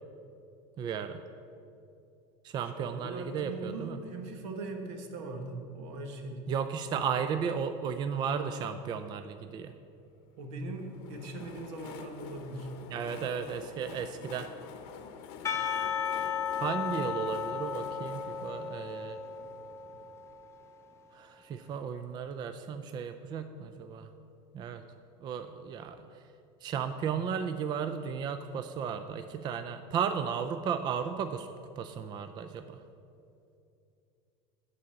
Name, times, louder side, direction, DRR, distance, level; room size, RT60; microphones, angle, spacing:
voice 1, 0.8-1.2 2.4-4.0 6.5-9.7 12.9-14.5 16.5-19.2 21.1-24.1 24.5-24.8 25.2-26.1 26.6-31.5 31.8-32.8, right 7 dB, 30° right, 9 dB, 0.4 m, -34 dB
voice 2, 2.6-6.4 10.4-12.7 16.7-16.9, right 2 dB, 75° right, 3 dB, 1.4 m, -40 dB
Train, 10.7-20.4, left 7 dB, 65° left, 0.8 m, -48 dB
Percussion / Church bell, 15.4-20.5, left 7 dB, 20° left, 0.7 m, -35 dB
10.5 x 4.1 x 7.4 m, 2.6 s
supercardioid pair, 135°, 15 cm